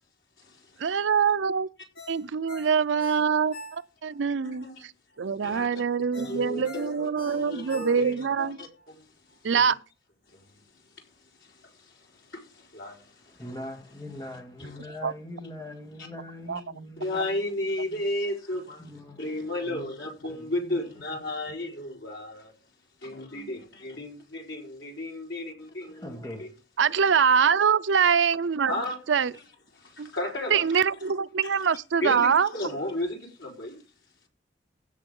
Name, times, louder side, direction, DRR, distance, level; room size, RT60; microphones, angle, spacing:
voice 1, 0.8-1.7 2.1-4.9 5.2-8.6 9.5-9.7 15.0-15.1 16.5-16.6 26.8-28.7 29.1-29.3 30.0-30.1 30.5-32.5, right 6 dB, 75° right, 0.5 m, -24 dB
Ringtone, 1.9-4.2 4.6-4.7 6.1-8.4 8.8-8.9, left 1 dB, 50° left, 4.7 m, -45 dB
voice 2, 5.4-5.8 6.1-8.9 12.3-12.4 12.7-13.0 14.2-14.3 14.6-14.8 16.0-16.1 17.0-18.8 19.2-22.5 23.0-26.5 27.9-28.0 28.7-29.0 30.0-30.8 31.4-31.5 32.0-33.8, left 1 dB, 75° left, 4.4 m, -33 dB
voice 3, 13.2-17.3 17.9-18.0 18.8-19.9 20.3-20.7 25.9-26.5, left 1 dB, 20° left, 2.8 m, -42 dB
16.5 x 6.9 x 3.7 m
head